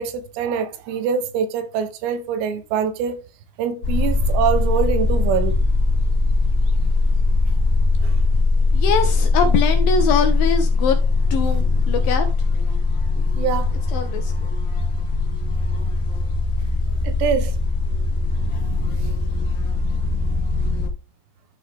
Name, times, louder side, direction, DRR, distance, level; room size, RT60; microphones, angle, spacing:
voice 1, 0.0-3.2 3.6-5.6 8.0-8.1 13.4-13.7 17.0-17.6, right 7 dB, 85° right, 3.1 m, -24 dB
sound 1, 3.8-20.9, left 3 dB, 55° left, 1.7 m, -20 dB
voice 2, 8.7-11.0 11.3-12.3 13.9-14.5, left 5 dB, 75° left, 2.2 m, -22 dB
12.0 x 4.1 x 3.5 m
omnidirectional pair, 4.8 m